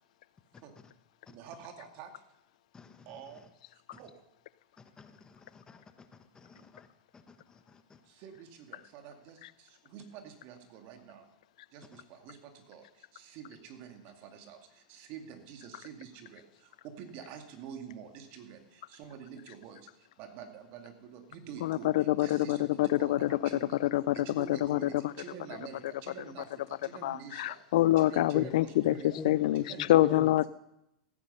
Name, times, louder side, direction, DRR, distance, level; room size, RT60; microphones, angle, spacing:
voice 1, 1.3-2.2 3.1-3.4 3.9-4.1 6.5-6.6 8.0-11.3 11.7-23.8 24.1-27.6 28.0-29.2 29.5-30.4, right 8 dB, 55° right, 5 dB, 2.3 m, -48 dB
voice 2, 2.7-3.1 3.9-4.0 4.8-6.1 6.3-6.9 7.1-8.0 28.3-28.5 28.8-30.3, left 5 dB, 20° left, 8 dB, 1.2 m, -45 dB
voice 3, 21.6-23.4 23.8-24.9 27.0-29.6 29.9-30.5, left 15 dB, 70° left, 19 dB, 0.4 m, -26 dB
15.5 x 9.7 x 5.6 m, 0.85 s
hypercardioid pair, 105°, 4 cm